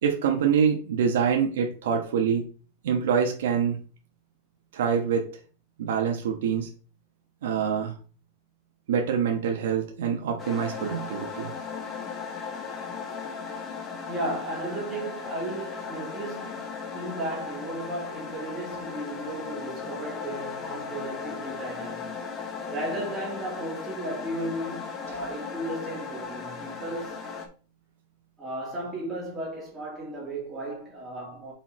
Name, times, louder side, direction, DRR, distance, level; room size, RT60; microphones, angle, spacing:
voice 1, 0.0-2.5 2.8-3.8 4.7-5.3 5.8-6.7 7.4-8.0 8.9-11.5, right 7 dB, 80° right, 1.3 m, -25 dB
sound 1, 10.4-27.5, left 5 dB, 20° left, 1.0 m, -37 dB
voice 2, 14.1-22.1 22.7-27.2 28.4-31.5, right 1 dB, 10° right, 2.6 m, -35 dB
5.6 x 4.4 x 4.3 m
supercardioid pair, 170°, 0 cm